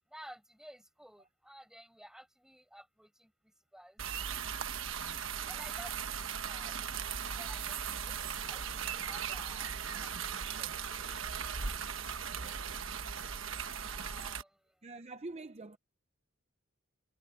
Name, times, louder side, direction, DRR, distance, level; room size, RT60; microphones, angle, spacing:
voice 1, 0.1-3.3 3.7-4.0 5.5-6.7 7.4-9.7 9.9-10.1 10.6-10.7 11.0-11.3 12.2-12.5 13.9-14.5, equal, 5° right, 5.4 m, -54 dB
sound 1, 4.0-14.4, right 7 dB, 70° right, 1.2 m, -38 dB
voice 2, 14.8-15.8, right 2 dB, 30° right, 0.7 m, -45 dB
head